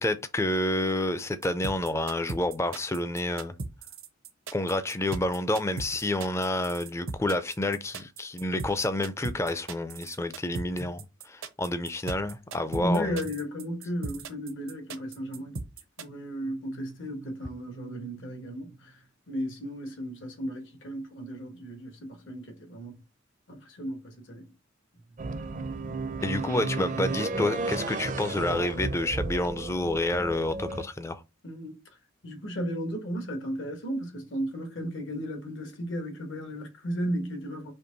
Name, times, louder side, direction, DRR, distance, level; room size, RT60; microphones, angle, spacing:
voice 1, 0.0-3.5 4.5-13.2 26.2-31.2, left 1 dB, 15° left, 0.4 m, -29 dB
sound 1, 1.4-16.0, right 3 dB, 80° right, 0.7 m, -37 dB
voice 2, 12.7-15.6 16.0-18.9 19.3-23.0 23.5-24.5 31.4-31.8 32.2-37.7, equal, 65° left, 1.3 m, -34 dB
sound 2, 25.2-30.9, right 3 dB, 40° right, 0.5 m, -33 dB
4.4 x 3.0 x 3.9 m
head